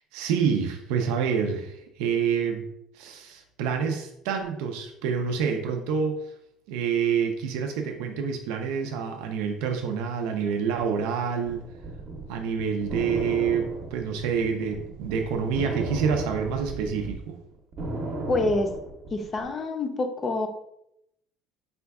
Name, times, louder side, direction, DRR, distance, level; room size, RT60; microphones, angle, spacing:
voice 1, 0.1-2.7 2.9-6.2 6.7-11.6 12.3-17.4, right 6 dB, 85° right, 4 dB, 0.5 m, -27 dB
sound 1, 11.4-17.1 17.5-19.4, right 2 dB, 40° right, 0.7 m, -34 dB
voice 2, 18.3-18.7 19.1-20.5, left 2 dB, 25° left, 6 dB, 0.5 m, -26 dB
4.9 x 2.2 x 3.5 m, 0.79 s
cardioid pair, 160°, 0 cm